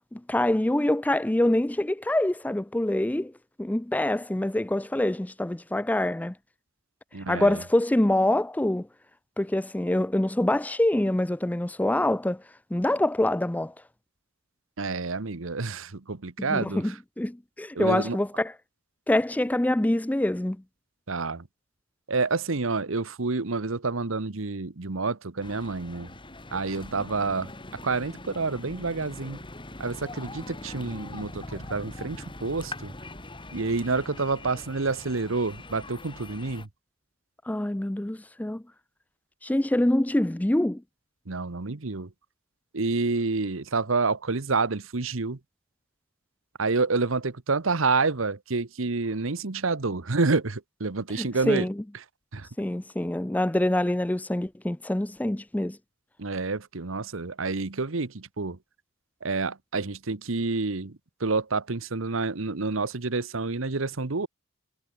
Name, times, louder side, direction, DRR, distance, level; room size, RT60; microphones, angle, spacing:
voice 1, 0.1-3.3 3.6-6.3 7.3-8.9 9.4-12.4 12.7-13.7 16.4-18.5 19.1-20.6 37.5-38.6 39.4-40.8 51.2-51.8 52.6-55.8, left 1 dB, 10° left, 0.4 m, -25 dB
voice 2, 7.1-7.6 14.8-16.8 17.7-18.2 21.1-21.4 22.1-26.1 26.5-27.5 27.8-29.4 29.8-32.9 33.5-36.7 41.3-42.1 42.7-45.4 46.6-51.7 52.3-52.5 56.2-58.6 59.2-64.3, right 3 dB, 70° right, 1.1 m, -28 dB
sound 1, 25.4-36.7, left 2 dB, 25° left, 3.5 m, -42 dB
head